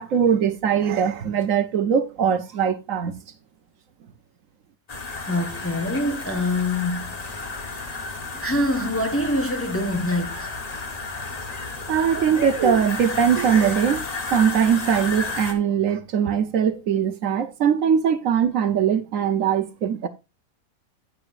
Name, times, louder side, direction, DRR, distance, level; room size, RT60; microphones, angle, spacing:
voice 1, 0.0-3.2 11.9-20.1, right 8 dB, 70° right, 1.1 m, -21 dB
sound 1, 4.9-15.5, left 3 dB, 30° left, 1.1 m, -32 dB
voice 2, 5.2-7.2 7.5-7.8 8.3-10.6, left 1 dB, 10° left, 0.9 m, -25 dB
16.0 x 5.9 x 2.5 m
omnidirectional pair, 1.5 m